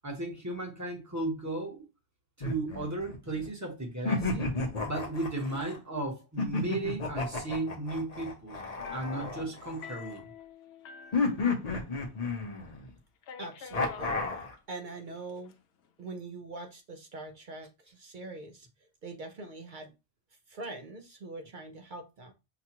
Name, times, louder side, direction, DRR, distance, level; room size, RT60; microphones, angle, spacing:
voice 1, 0.0-1.8 2.4-4.5 4.8-8.6 8.9-10.3, right 2 dB, 15° right, 1.0 m, -35 dB
sound 1, 2.4-3.5 4.0-5.8 6.4-10.1 11.1-12.9 13.7-14.5, left 3 dB, 40° left, 0.8 m, -32 dB
sound 2, 8.8-12.1 12.3-12.4 13.2-14.1 15.1-15.5, left 5 dB, 80° left, 0.9 m, -48 dB
voice 2, 13.4-15.5 16.0-18.7 19.0-19.9 20.5-22.3, right 2 dB, 55° right, 0.6 m, -43 dB
5.9 x 2.3 x 2.9 m
omnidirectional pair, 1.1 m